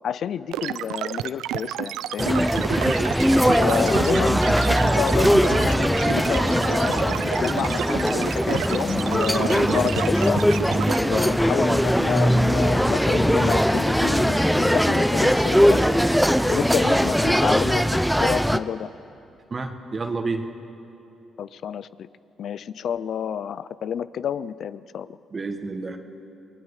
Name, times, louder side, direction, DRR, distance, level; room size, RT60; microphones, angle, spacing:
voice 1, 0.0-2.5 3.5-4.4 4.9-10.4 11.0-15.8 16.5-18.9 21.4-22.1 22.4-25.2, left 8 dB, 65° left, 17 dB, 0.6 m, -29 dB
sound 1, 0.5-11.0, right 13 dB, 85° right, 0.4 m, -30 dB
sound 2, 2.2-18.6, equal, ahead, 0.7 m, -20 dB
voice 2, 9.4-9.8 11.1-11.2 19.5-20.5 25.3-26.0, right 3 dB, 40° right, 5 dB, 1.8 m, -30 dB
28.5 x 19.0 x 5.0 m, 2.9 s
supercardioid pair, 55°, 0 cm